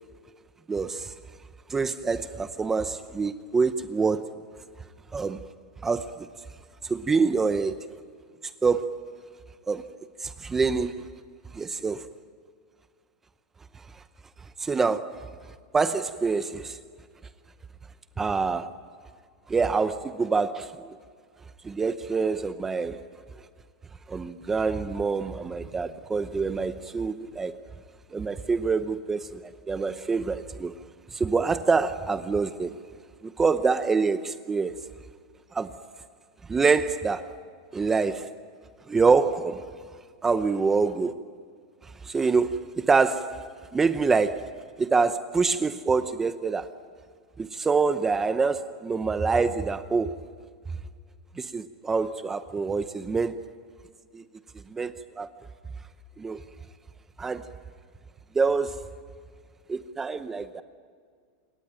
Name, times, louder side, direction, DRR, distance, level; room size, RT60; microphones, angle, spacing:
voice 1, 0.7-1.1 1.7-4.4 5.1-5.4 5.8-6.3 6.8-7.9 8.6-9.0 9.7-9.9 10.2-11.1 11.5-12.1 13.7-14.0 14.6-15.3 15.7-16.8 18.2-18.7 19.5-21.0 21.6-23.0 24.1-27.6 28.1-30.7 31.1-32.8 33.2-34.8 35.5-35.8 36.5-37.3 37.7-38.3 38.9-39.7 40.2-41.2 41.8-46.7 47.4-50.2 51.4-53.4 54.1-54.2 54.7-55.3 56.2-56.4 57.2-57.5 58.3-58.8 59.7-60.6, right 4 dB, 10° right, 0.7 m, -26 dB
28.0 x 23.0 x 9.0 m
supercardioid pair, 160°, 3 cm